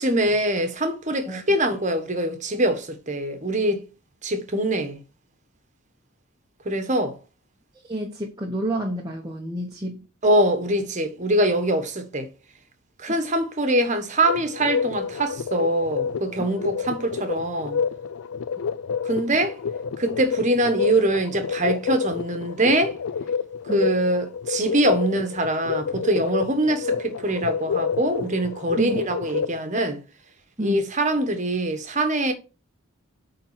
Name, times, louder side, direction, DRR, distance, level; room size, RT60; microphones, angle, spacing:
voice 1, 0.0-3.8 4.2-5.0 6.6-7.2 10.2-12.3 13.0-17.8 19.0-19.6 20.0-22.9 23.7-30.0 30.6-32.3, right 1 dB, 35° right, 1.3 m, -23 dB
voice 2, 7.8-10.1 16.4-16.5 23.7-23.8 28.8-29.0 30.6-30.8, right 1 dB, 15° right, 1.0 m, -29 dB
sound 1, 14.2-29.6, left 6 dB, 75° left, 0.4 m, -29 dB
8.6 x 3.8 x 5.6 m
head